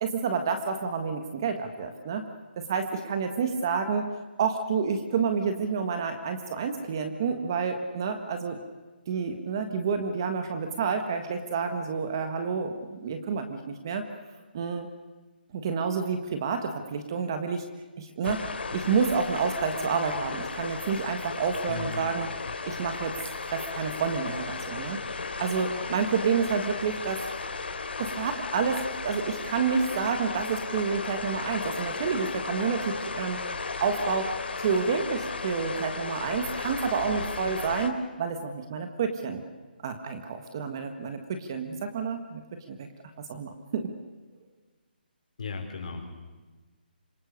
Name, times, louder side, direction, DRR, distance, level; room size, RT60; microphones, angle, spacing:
voice 1, 0.0-2.3 2.6-4.1 4.4-8.6 9.1-14.0 14.5-14.9 15.5-17.6 18.0-18.4 18.7-22.3 22.6-23.1 23.5-25.0 25.4-27.2 28.0-33.4 33.8-34.3 34.6-39.4 39.8-42.4 42.7-42.9 43.3-43.9, right 5 dB, 25° right, 7 dB, 1.5 m, -29 dB
sound 1, 18.2-37.9, left 4 dB, 85° left, 3.4 m, -35 dB
voice 2, 21.7-22.0 45.4-46.1, left 4 dB, 45° left, 3 dB, 4.8 m, -36 dB
26.5 x 23.5 x 6.6 m, 1.3 s
hypercardioid pair, 180°, 6 cm